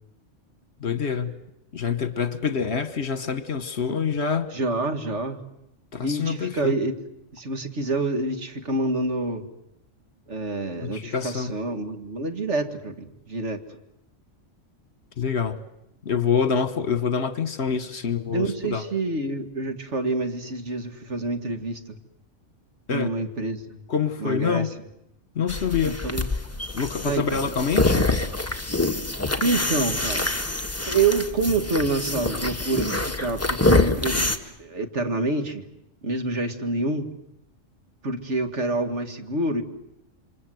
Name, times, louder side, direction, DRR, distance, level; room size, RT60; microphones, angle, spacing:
voice 1, 0.8-1.4 1.7-4.5 5.9-6.7 10.8-11.5 15.2-15.6 16.0-18.8 22.9-23.1 23.9-24.7 25.3-26.0 26.7-28.1, left 6 dB, 60° left, 1.6 m, -26 dB
voice 2, 4.5-5.4 6.0-7.0 7.3-9.4 10.3-13.6 18.3-22.0 22.9-23.6 24.2-24.7 25.8-26.3 27.0-27.4 29.4-30.3 30.9-35.6 36.0-37.1 38.0-39.6, right 2 dB, 65° right, 2.4 m, -27 dB
sound 1, 25.5-34.4, left 2 dB, 10° left, 1.5 m, -25 dB
28.0 x 25.5 x 7.9 m
omnidirectional pair, 1.3 m